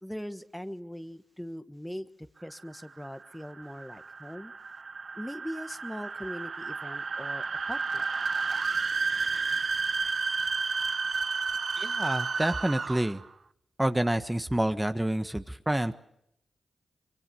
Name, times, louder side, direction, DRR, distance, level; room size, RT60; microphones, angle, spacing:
voice 1, 0.0-4.5 5.1-8.1, equal, 5° left, 11 dB, 1.4 m, -40 dB
sound 1, 2.6-13.3, right 4 dB, 55° right, 1.0 m, -31 dB
voice 2, 11.8-13.2 13.8-15.9, right 1 dB, 10° right, 9 dB, 1.3 m, -28 dB
24.5 x 23.0 x 7.0 m, 0.75 s
cardioid pair, 45°, 0 cm